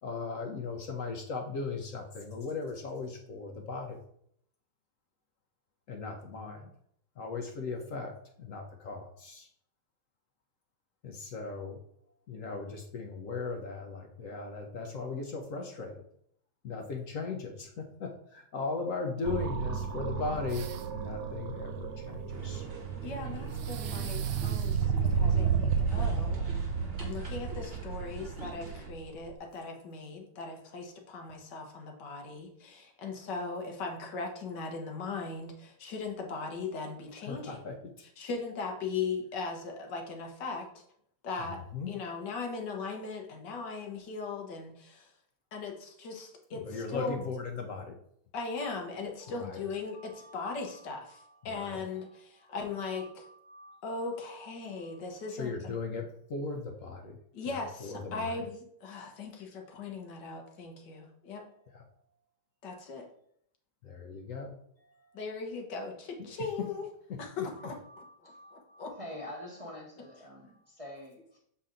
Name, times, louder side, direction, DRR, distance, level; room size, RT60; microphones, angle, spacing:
voice 1, 0.0-4.0 5.9-6.7 7.2-8.1 8.4-9.5 11.0-11.8 12.3-16.0 16.6-20.6 20.9-22.6 37.3-37.7 41.4-41.9 46.5-48.0 49.2-49.6 49.9-50.4 51.1-52.2 52.8-54.0 54.8-55.0 55.3-56.0 56.3-57.2 57.5-58.5 61.7-61.8 63.8-64.5 64.9-65.1 66.2-66.3 67.4-67.7 68.4-68.9, left 4 dB, 60° left, 2 dB, 1.0 m, -38 dB
sound 1, 19.2-29.3, right 6 dB, 85° right, 1.4 m, -32 dB
sound 2, 20.5-21.1 23.5-24.9, right 9 dB, 65° right, 0.9 m, -46 dB
sound 3, 22.3-28.9, right 2 dB, 40° right, 1.3 m, -47 dB
voice 2, 23.0-26.4 27.0-37.6 38.2-40.7 41.2-45.1 45.5-47.1 48.3-53.2 53.8-55.7 57.3-61.5 62.6-63.1 65.1-66.9 67.2-67.8 68.8-68.9, left 4 dB, 80° left, 2 dB, 1.7 m, -39 dB
voice 3, 68.9-71.4, left 1 dB, 25° right, -3 dB, 1.0 m, -45 dB
6.9 x 4.2 x 3.8 m, 0.67 s
omnidirectional pair, 1.8 m